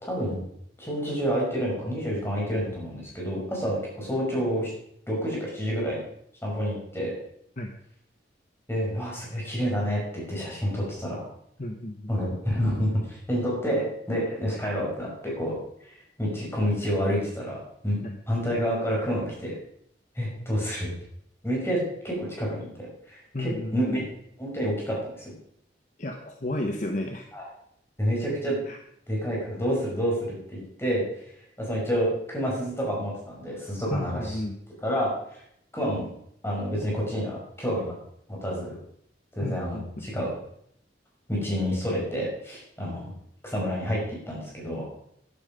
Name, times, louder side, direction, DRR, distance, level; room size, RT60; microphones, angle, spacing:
voice 1, 0.0-0.4 0.8-4.7 5.1-6.0 6.4-7.1 8.7-11.3 12.1-18.0 18.3-19.5 20.2-20.9 21.4-21.8 22.0-25.3 27.3-27.4 28.0-28.6 29.1-31.2 31.6-34.4 34.8-35.4 35.7-36.1 36.4-37.9 38.3-38.8 39.4-40.3 41.3-43.1 43.4-44.0 44.3-44.9, equal, 15° left, -3 dB, 5.7 m, -29 dB
voice 2, 11.6-12.1 18.0-18.2 23.3-24.0 26.0-27.3 28.7-28.8 33.9-34.5 39.4-40.1, left 1 dB, 45° left, 4 dB, 1.1 m, -32 dB
11.5 x 11.0 x 5.3 m, 0.71 s
head